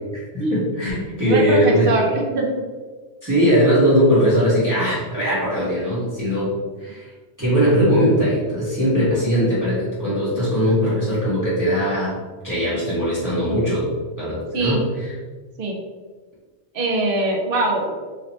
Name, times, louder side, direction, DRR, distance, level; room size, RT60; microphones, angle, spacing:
voice 1, 0.3-1.9 3.2-6.5 6.8-7.1 7.4-12.2 12.4-13.9 14.2-15.1, equal, 20° right, -10 dB, 1.1 m, -20 dB
voice 2, 1.2-2.6 14.5-14.8 15.6-15.8 16.7-17.9, right 2 dB, 60° right, 0 dB, 0.7 m, -22 dB
2.9 x 2.8 x 3.0 m, 1.4 s
omnidirectional pair, 1.1 m